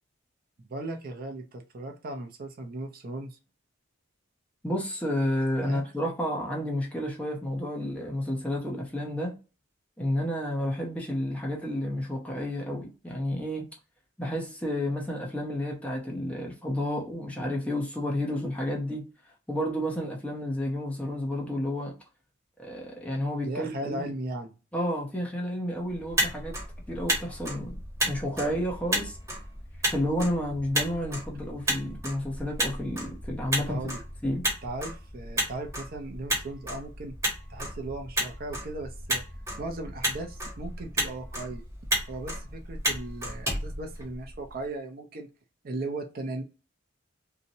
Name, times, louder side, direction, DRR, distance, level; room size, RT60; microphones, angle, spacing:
voice 1, 0.6-3.4 5.6-5.9 23.4-24.5 33.6-34.0 34.6-37.1 37.5-39.2 39.6-41.6 42.1-45.3 45.6-46.4, right 2 dB, 45° right, 0.5 m, -37 dB
voice 2, 4.6-9.4 10.0-13.7 14.2-19.1 19.5-21.9 22.6-24.1 24.7-26.6 26.9-27.8 28.1-29.2 29.9-33.8 34.2-34.5, left 1 dB, 5° left, 0.6 m, -31 dB
Motor vehicle (road), 25.9-44.5, equal, 15° right, 1.0 m, -33 dB
2.7 x 2.1 x 2.6 m
head